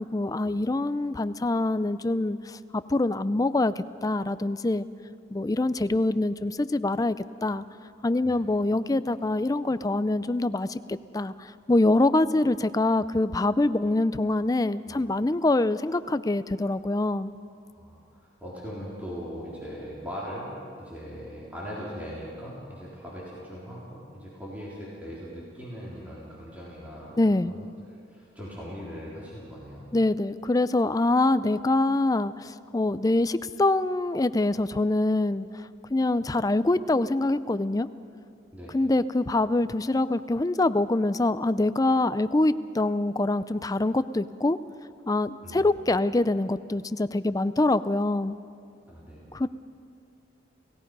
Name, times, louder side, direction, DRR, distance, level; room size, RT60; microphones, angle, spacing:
voice 1, 0.0-4.9 5.3-7.2 7.4-7.6 8.0-17.3 27.2-27.5 29.9-35.5 35.9-37.9 38.7-44.6 45.1-48.4 49.3-49.5, left 2 dB, 20° left, 14 dB, 0.4 m, -25 dB
voice 2, 17.6-27.7 28.1-29.9 38.5-38.7 45.4-45.9 48.9-49.3, equal, 10° right, -7 dB, 3.7 m, -40 dB
29.5 x 17.0 x 5.4 m, 2.4 s
head